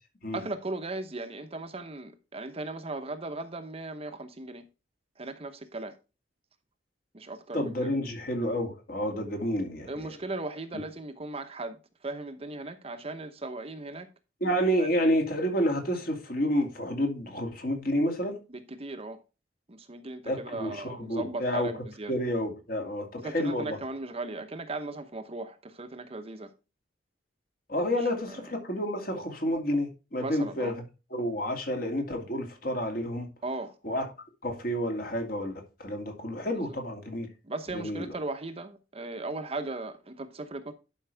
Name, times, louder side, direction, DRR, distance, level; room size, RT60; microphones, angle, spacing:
voice 1, 0.3-4.7 5.2-6.0 7.1-7.9 9.9-11.8 12.0-14.1 14.8-14.9 18.5-19.2 19.7-22.1 23.2-26.5 30.2-30.7 33.4-33.7 37.4-40.7, right 2 dB, 30° right, 0.9 m, -37 dB
voice 2, 7.5-10.2 14.4-18.4 20.2-23.8 27.7-30.8 31.1-33.3 33.8-34.0 34.4-37.3 37.7-38.2, equal, 50° left, 2.5 m, -30 dB
11.5 x 5.4 x 3.4 m
head